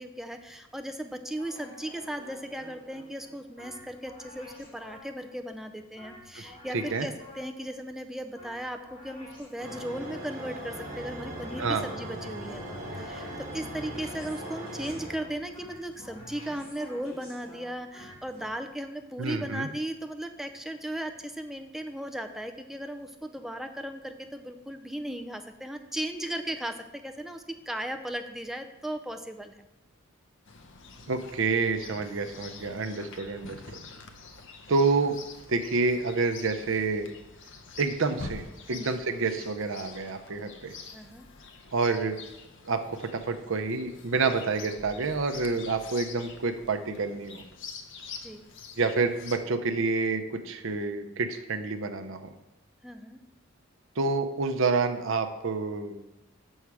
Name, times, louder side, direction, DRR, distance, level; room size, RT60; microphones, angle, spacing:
voice 1, 0.0-29.7 38.7-38.9 40.9-41.3 48.2-48.5 52.8-53.2, right 1 dB, ahead, 6 dB, 0.4 m, -37 dB
sound 1, 1.4-5.3 6.0-7.7 8.3-10.1 10.7-18.5, equal, 30° left, 2.7 m, -49 dB
voice 2, 6.7-7.1 11.6-11.9 19.2-19.7 31.1-33.6 34.7-35.2 35.5-37.1 37.8-40.7 41.7-42.2 42.7-47.4 48.8-52.3 54.0-56.1, right 4 dB, 60° right, 7 dB, 0.7 m, -28 dB
sound 2, 9.6-15.6, right 1 dB, 35° right, 1.7 m, -39 dB
Chirp tweet, 30.4-49.4, left 4 dB, 60° left, 0.7 m, -46 dB
7.1 x 6.4 x 4.7 m, 0.97 s
head